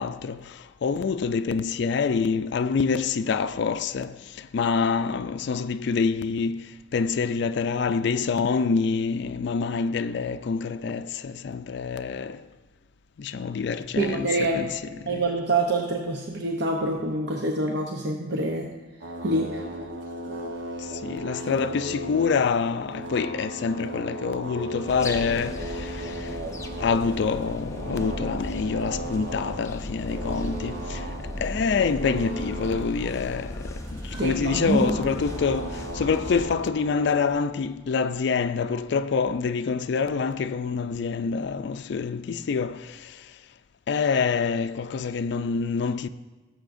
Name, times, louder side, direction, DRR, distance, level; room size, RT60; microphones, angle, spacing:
voice 1, 0.0-12.5 13.2-15.2 20.8-26.4 26.8-43.3 43.9-46.1, left 5 dB, 65° left, 0.4 m, -26 dB
voice 2, 14.0-14.7 15.1-18.7 19.2-19.6 34.2-35.0, right 2 dB, 65° right, 0.8 m, -26 dB
sound 1, 19.0-37.3, right 1 dB, 85° right, 1.1 m, -37 dB
sound 2, 24.9-36.5, left 1 dB, 15° left, 0.6 m, -36 dB
16.5 x 7.5 x 2.6 m
head